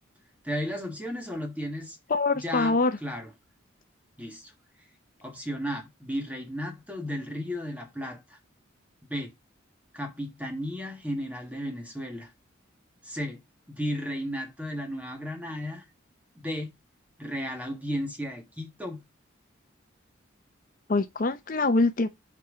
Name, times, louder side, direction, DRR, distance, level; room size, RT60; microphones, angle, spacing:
voice 1, 0.4-2.0 2.3-3.3 4.2-4.5 5.2-8.4 9.1-9.3 9.9-12.3 13.0-13.4 13.7-15.9 16.4-16.8 17.2-19.0, equal, 5° right, 1.5 m, -34 dB
voice 2, 2.1-3.0 20.9-22.1, left 3 dB, 40° left, 0.6 m, -24 dB
6.0 x 4.4 x 4.9 m
head